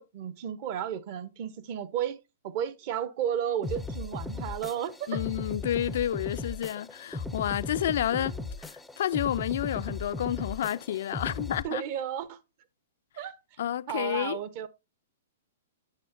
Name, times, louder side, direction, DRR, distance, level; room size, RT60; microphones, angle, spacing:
voice 1, 0.0-5.2 8.1-8.4 11.6-12.4 13.2-13.4 13.9-14.7, right 9 dB, 40° right, 0.9 m, -33 dB
sound 1, 3.6-11.6, left 3 dB, 5° left, 0.5 m, -37 dB
voice 2, 5.1-8.3 8.6-11.8 13.6-14.4, left 11 dB, 60° left, 0.3 m, -30 dB
8.5 x 7.7 x 2.5 m
hypercardioid pair, 150°, 0 cm